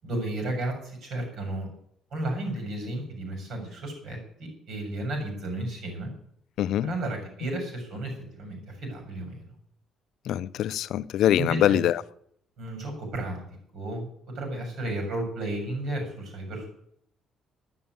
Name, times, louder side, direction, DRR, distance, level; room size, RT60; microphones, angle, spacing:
voice 1, 0.0-1.7 2.1-6.1 6.8-9.4 11.3-11.8 12.6-13.4 13.7-14.1 14.3-16.7, right 1 dB, 60° right, 6.9 m, -33 dB
voice 2, 6.6-6.9 10.3-12.0, left 12 dB, 65° left, 0.6 m, -24 dB
12.5 x 10.5 x 9.5 m
cardioid pair, 165°, 0 cm